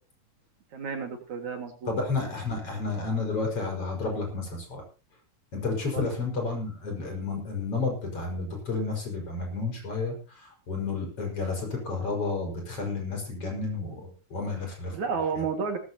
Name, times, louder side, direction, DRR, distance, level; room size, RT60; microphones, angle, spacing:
voice 1, 0.7-1.9 5.9-6.1 14.9-15.8, right 5 dB, 65° right, 4 dB, 3.5 m, -31 dB
voice 2, 1.9-4.8 5.5-15.0, left 3 dB, 45° left, 1 dB, 6.3 m, -31 dB
17.5 x 14.5 x 2.9 m, 0.34 s
omnidirectional pair, 3.6 m